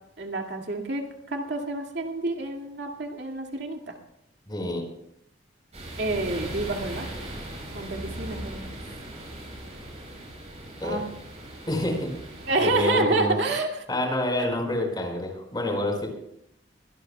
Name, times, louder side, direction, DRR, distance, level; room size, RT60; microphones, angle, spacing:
voice 1, 0.2-4.0 6.0-7.1 7.7-8.8 10.8-11.0 12.5-13.7, right 2 dB, 75° right, 2 dB, 2.3 m, -28 dB
voice 2, 4.5-4.8 10.8-11.0 11.7-12.1 12.6-13.4 13.9-16.1, left 1 dB, 25° left, 2 dB, 5.0 m, -27 dB
sound 1, 5.7-12.8, right 1 dB, 40° right, 7.7 m, -39 dB
23.5 x 17.5 x 2.3 m, 0.75 s
head